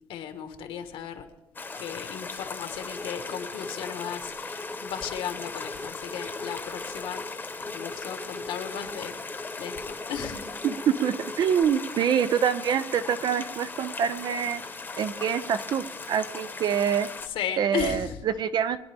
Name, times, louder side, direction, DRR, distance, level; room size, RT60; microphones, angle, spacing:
voice 1, 0.1-1.3 1.8-7.2 7.6-10.5 17.3-18.2, left 8 dB, 70° left, 7 dB, 1.5 m, -35 dB
sound 1, 1.5-17.3, left 4 dB, 20° left, 1.1 m, -38 dB
sound 2, 2.8-11.6, left 2 dB, 5° left, 0.6 m, -42 dB
voice 2, 10.6-14.6 14.9-17.1 17.6-18.8, right 8 dB, 50° right, 12 dB, 0.7 m, -26 dB
22.5 x 10.5 x 3.5 m, 1.0 s
cardioid pair, 120°, 9 cm